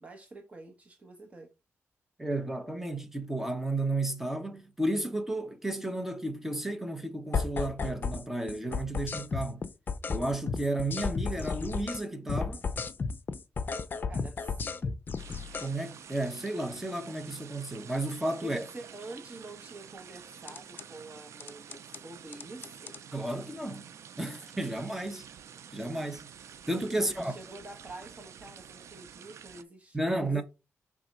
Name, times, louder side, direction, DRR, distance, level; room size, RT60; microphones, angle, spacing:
voice 1, 0.0-1.5 14.1-14.9 18.4-22.9 27.0-30.4, right 2 dB, 30° right, 1.1 m, -47 dB
voice 2, 2.2-9.7 10.1-12.6 15.6-18.7 23.1-23.9 24.2-25.3 25.7-26.3 26.7-27.3 29.9-30.4, right 1 dB, 5° right, 1.0 m, -33 dB
sound 1, 7.3-8.2 8.5-12.0 12.3-15.7 20.5-20.8 21.4-22.0 22.3-23.0, left 5 dB, 40° left, 0.5 m, -33 dB
sound 2, 15.2-29.6, right 8 dB, 75° right, 0.5 m, -49 dB
5.8 x 3.6 x 5.3 m
wide cardioid pair, 145°, 5 cm